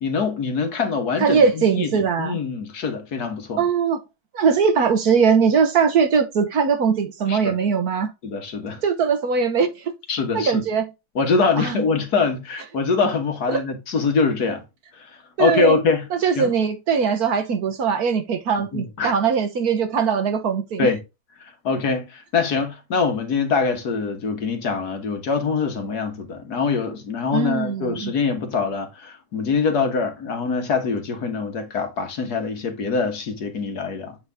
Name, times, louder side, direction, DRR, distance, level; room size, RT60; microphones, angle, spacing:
voice 1, 0.0-3.6 7.3-7.5 8.2-8.8 10.1-10.6 11.2-14.6 15.0-15.1 15.4-16.1 16.4-16.5 18.7-19.1 20.8-21.0 21.6-34.2, left 4 dB, 60° left, 1.9 m, -24 dB
voice 2, 1.2-2.4 3.6-4.0 4.3-8.1 8.8-9.9 10.3-10.9 11.6-11.8 13.5-13.6 15.4-15.8 16.1-20.9 27.3-28.1, right 6 dB, 60° right, 1.4 m, -20 dB
8.1 x 4.0 x 3.5 m
omnidirectional pair, 2.0 m